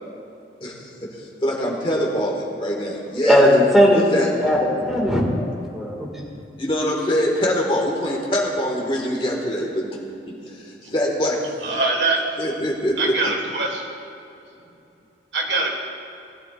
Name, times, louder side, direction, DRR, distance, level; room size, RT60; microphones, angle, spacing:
voice 1, 1.1-3.4 3.9-4.3 6.6-9.9 10.3-11.4 12.4-13.3, equal, 30° left, -2 dB, 1.9 m, -24 dB
voice 2, 3.3-6.2, left 1 dB, ahead, -3 dB, 2.1 m, -18 dB
voice 3, 11.6-12.4 13.0-13.8 15.3-15.7, right 3 dB, 80° right, 1 dB, 1.9 m, -23 dB
20.0 x 11.5 x 2.6 m, 2.8 s
head